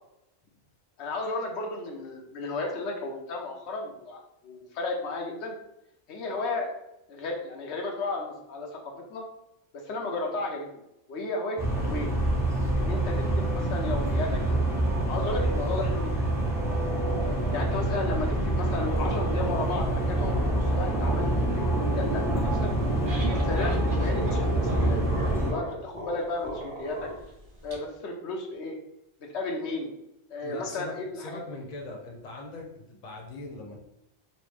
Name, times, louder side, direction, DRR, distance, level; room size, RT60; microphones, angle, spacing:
voice 1, 1.0-5.6 6.1-6.7 7.1-9.2 9.7-10.7 11.1-12.1 12.7-14.8 15.1-16.3 17.5-22.7 23.2-27.1 27.6-28.8 29.2-29.9 30.3-31.4, left 2 dB, 85° left, 1 dB, 0.9 m, -34 dB
sound 1, 11.6-25.5, right 1 dB, 5° right, 0.4 m, -26 dB
voice 2, 17.3-17.7 18.0-18.2 30.4-33.8, left 2 dB, 45° left, 0 dB, 0.8 m, -41 dB
sound 2, 22.7-27.7, right 1 dB, 55° right, 0.9 m, -38 dB
4.2 x 2.0 x 3.1 m, 0.84 s
omnidirectional pair, 1.1 m